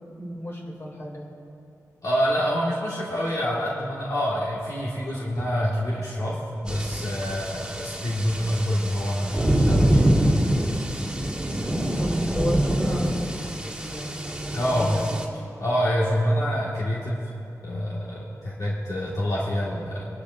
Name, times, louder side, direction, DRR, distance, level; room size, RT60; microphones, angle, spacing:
voice 1, 0.2-1.3 11.9-14.2 14.6-15.2, equal, 40° left, -2 dB, 3.0 m, -33 dB
voice 2, 2.0-10.9 14.5-15.1 15.6-17.3 17.6-20.1, equal, 65° left, -6 dB, 1.8 m, -27 dB
sound 1, 6.7-15.2, right 1 dB, 10° right, 1.9 m, -25 dB
24.5 x 11.5 x 2.6 m, 2.7 s
wide cardioid pair, 80°, 6 cm